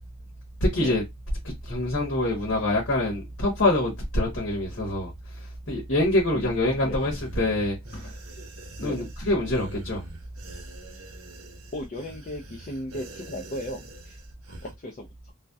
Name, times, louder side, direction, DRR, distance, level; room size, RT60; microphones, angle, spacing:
voice 1, 0.6-1.0 1.4-8.1 8.8-10.0, left 1 dB, 70° left, 1.0 m, -25 dB
voice 2, 6.3-7.1 8.8-9.1 11.7-14.2 14.5-15.3, left 1 dB, 35° left, 0.4 m, -37 dB
sound 1, 6.9-14.7, right 2 dB, 85° right, 0.7 m, -45 dB
2.6 x 2.1 x 2.2 m
head